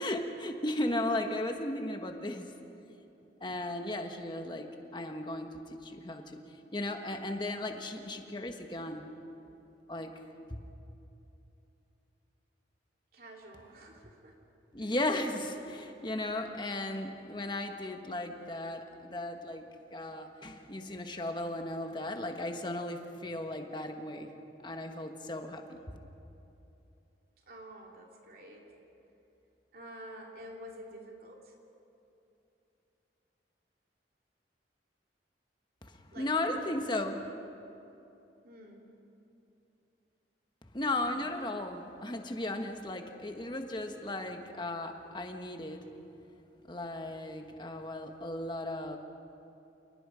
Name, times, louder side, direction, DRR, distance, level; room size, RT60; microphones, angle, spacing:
voice 1, 0.0-2.5 3.4-4.7 4.9-5.5 5.8-6.2 6.7-9.0 9.9-10.1 10.5-10.7 14.7-19.6 19.9-24.3 24.6-25.8 36.2-37.2 40.7-45.8 46.7-49.0, left 1 dB, 25° left, 5 dB, 1.4 m, -35 dB
voice 2, 13.1-14.4 14.8-15.0 27.5-28.7 29.7-31.5 36.1-37.2 38.4-38.9, right 1 dB, 55° right, -1 dB, 2.9 m, -49 dB
28.0 x 19.0 x 5.1 m, 2.9 s
head